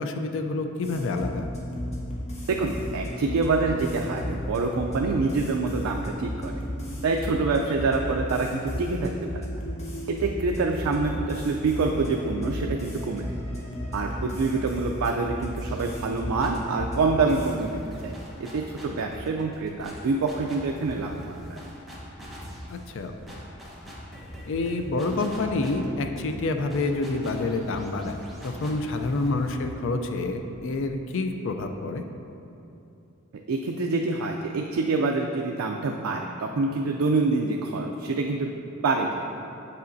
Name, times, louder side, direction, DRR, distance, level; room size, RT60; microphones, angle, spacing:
voice 1, 0.0-1.5 22.7-23.1 24.5-28.2 28.4-32.0, left 3 dB, 60° left, 6 dB, 0.4 m, -28 dB
sound 1, 0.8-17.6, equal, 30° left, 0.9 m, -34 dB
voice 2, 2.5-6.5 7.0-9.6 10.1-13.3 13.9-18.1 18.5-21.6 33.5-39.1, right 3 dB, 80° right, 1 dB, 0.4 m, -26 dB
sound 2, 15.6-16.8 17.3-31.0, equal, ahead, 0.9 m, -42 dB
7.3 x 5.5 x 2.6 m, 2.8 s
head